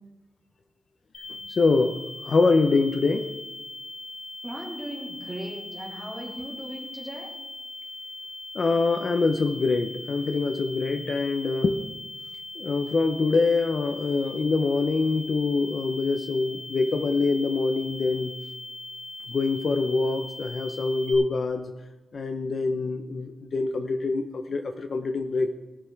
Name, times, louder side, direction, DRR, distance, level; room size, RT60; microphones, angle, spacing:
sound 1, 1.1-21.1, left 2 dB, 60° left, 3.0 m, -40 dB
voice 1, 1.5-2.0 2.2-3.3 8.5-11.8 12.6-18.3 19.3-21.7 22.1-25.5, left 3 dB, 45° left, 7 dB, 0.7 m, -24 dB
voice 2, 4.4-7.3, right 1 dB, 15° right, -4 dB, 3.3 m, -37 dB
20.0 x 6.7 x 4.7 m, 1.1 s
wide cardioid pair, 175°, 0 cm